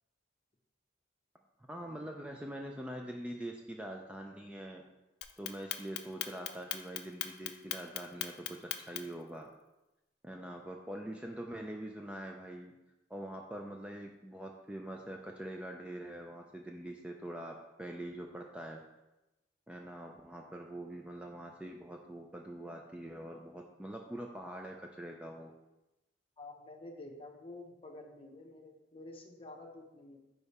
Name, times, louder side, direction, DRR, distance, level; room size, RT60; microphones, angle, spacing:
voice 1, 1.6-4.8 5.4-9.5 10.2-12.7 13.1-18.8 19.7-25.5, right 1 dB, 5° right, 1 dB, 0.3 m, -44 dB
Clock, 5.2-9.2, left 12 dB, 60° left, 0.4 m, -38 dB
voice 2, 26.4-30.2, left 2 dB, 30° left, 2 dB, 0.8 m, -49 dB
5.2 x 4.7 x 4.1 m, 0.98 s
head